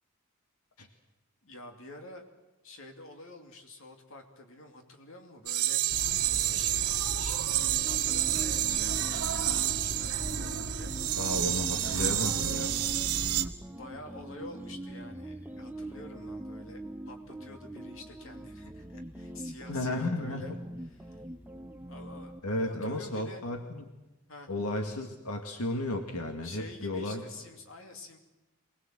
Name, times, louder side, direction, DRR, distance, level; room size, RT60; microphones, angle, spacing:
voice 1, 1.4-2.3 2.6-5.8 6.5-10.9 13.6-20.5 20.8-21.2 21.9-23.4 24.3-24.5 26.4-28.2, left 2 dB, 60° left, 4 dB, 2.7 m, -48 dB
sound 1, 5.5-13.4, right 14 dB, 90° right, 1.0 m, -29 dB
sound 2, 5.9-13.5, right 2 dB, 65° right, 1.2 m, -39 dB
sound 3, 7.6-22.4, right 1 dB, 10° right, 0.7 m, -43 dB
voice 2, 11.2-12.8 19.7-20.5 22.4-23.9 24.5-27.2, left 1 dB, 90° left, 4 dB, 2.0 m, -33 dB
24.0 x 20.0 x 7.6 m, 1.0 s
head